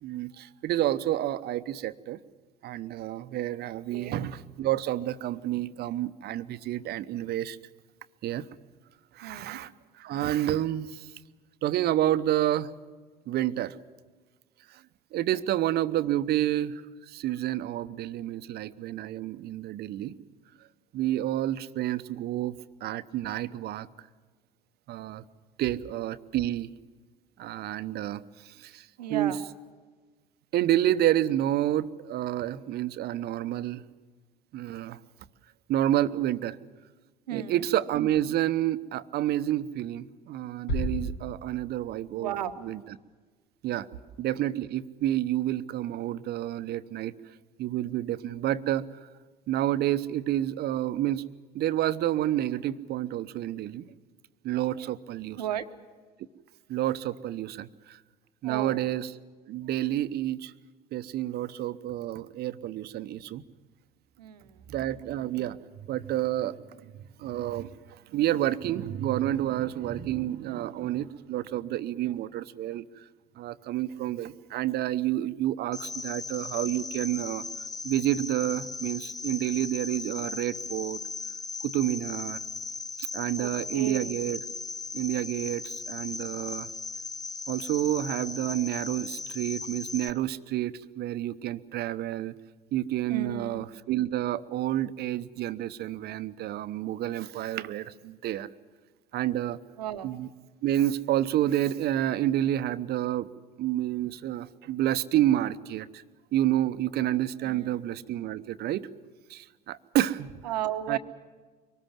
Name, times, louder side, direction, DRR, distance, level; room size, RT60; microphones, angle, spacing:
voice 1, 0.0-2.2 2.6-7.6 8.2-8.4 9.1-9.7 10.0-11.1 11.6-12.7 13.3-13.8 14.7-14.8 15.1-20.1 20.9-23.9 24.9-25.2 25.6-26.7 27.4-29.4 30.5-33.8 34.5-35.0 35.7-36.6 37.3-42.3 42.6-42.8 43.6-43.9 44.2-47.1 47.6-49.1 49.5-51.2 51.5-53.9 54.4-55.4 56.7-58.0 58.4-59.1 59.5-60.5 60.9-63.4 64.7-65.6 65.9-73.0 73.4-77.4 77.8-81.0 81.6-82.4 83.0-84.4 84.9-86.7 87.5-92.3 92.7-98.5 99.1-99.6 100.0-100.3 100.6-103.3 103.6-106.0 106.3-108.9 109.3-110.3 110.9-111.0, right 13 dB, 50° right, 13 dB, 1.0 m, -29 dB
voice 2, 9.2-9.6 29.0-29.4 37.3-37.7 42.2-42.6 55.4-55.6 58.4-58.8 64.2-64.7 72.1-72.2 83.4-84.1 93.1-93.6 99.8-100.1 107.4-107.7 110.4-111.0, right 10 dB, 80° right, 11 dB, 1.2 m, -34 dB
sound 1, 40.7-42.1, equal, 60° left, 5.7 m, -33 dB
Cricket, 75.7-90.1, left 4 dB, 15° left, 1.1 m, -38 dB
23.5 x 19.5 x 7.5 m, 1.4 s
hypercardioid pair, 65°, 21 cm